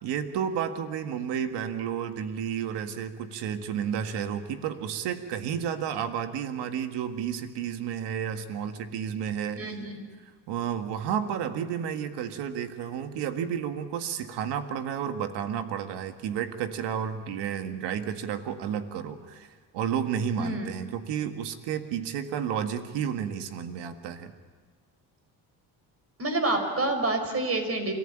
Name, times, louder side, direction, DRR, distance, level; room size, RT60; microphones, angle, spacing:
voice 1, 0.0-9.7 10.5-24.3, right 8 dB, 80° right, 8 dB, 1.8 m, -31 dB
voice 2, 9.6-9.9 20.4-20.7 26.2-27.9, right 2 dB, 35° right, 6 dB, 5.4 m, -28 dB
30.0 x 14.5 x 8.9 m, 1.5 s
cardioid pair, 85°, 41 cm